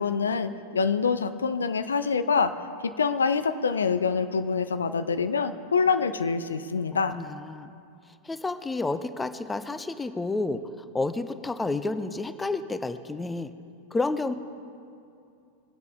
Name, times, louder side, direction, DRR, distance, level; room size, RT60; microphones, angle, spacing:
voice 1, 0.0-2.5 2.8-7.2, left 5 dB, 70° left, 11 dB, 0.5 m, -25 dB
voice 2, 7.1-7.7 8.2-10.6 10.9-13.5 13.9-14.3, left 3 dB, 10° left, 12 dB, 0.6 m, -30 dB
22.5 x 8.1 x 3.7 m, 2.5 s
figure-of-eight pair, 90°, 0 cm